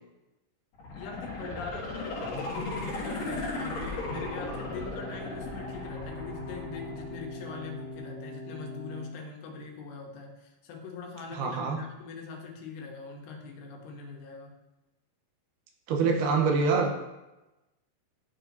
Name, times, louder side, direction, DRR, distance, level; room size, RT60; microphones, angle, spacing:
sound 1, 0.7-7.7 8.1-8.2, left 2 dB, 55° left, 2.2 m, -36 dB
voice 1, 0.9-14.5, left 4 dB, 90° left, 1 dB, 3.1 m, -42 dB
sound 2, 4.0-9.0, left 2 dB, 35° right, 2.2 m, -42 dB
voice 2, 11.3-11.8 15.9-17.0, right 4 dB, 85° right, 1 dB, 2.9 m, -25 dB
12.0 x 4.6 x 2.7 m, 1.0 s
omnidirectional pair, 4.5 m